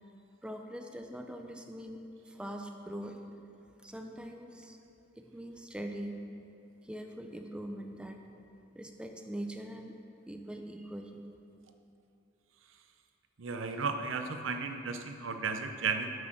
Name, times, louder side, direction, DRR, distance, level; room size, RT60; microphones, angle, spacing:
voice 1, 0.4-3.2 3.8-4.8 5.2-6.2 6.8-8.3 8.7-9.9 10.3-11.3, right 1 dB, 5° right, 4 dB, 0.5 m, -42 dB
voice 2, 13.4-16.1, right 5 dB, 85° right, 6 dB, 0.7 m, -34 dB
9.2 x 6.5 x 6.1 m, 2.7 s
head